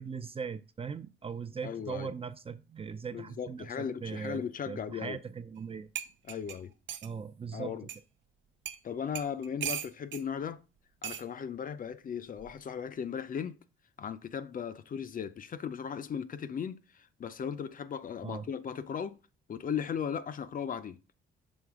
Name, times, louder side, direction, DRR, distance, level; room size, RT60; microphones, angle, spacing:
voice 1, 0.0-4.4 4.7-5.9 7.0-7.8 18.2-18.5, right 6 dB, 30° right, 0.5 m, -39 dB
voice 2, 1.6-2.1 3.1-5.2 6.3-6.7 7.5-7.9 8.8-10.6 11.0-13.6 14.0-19.2 19.5-21.0, left 7 dB, 45° left, 0.5 m, -37 dB
sound 1, 5.6-5.7 5.9-7.1 7.9-8.0 8.6-8.8 9.1-10.2 11.0-11.3 12.4-12.6, right 10 dB, 70° right, 0.7 m, -38 dB
6.3 x 3.2 x 4.8 m
cardioid pair, 90°, 20 cm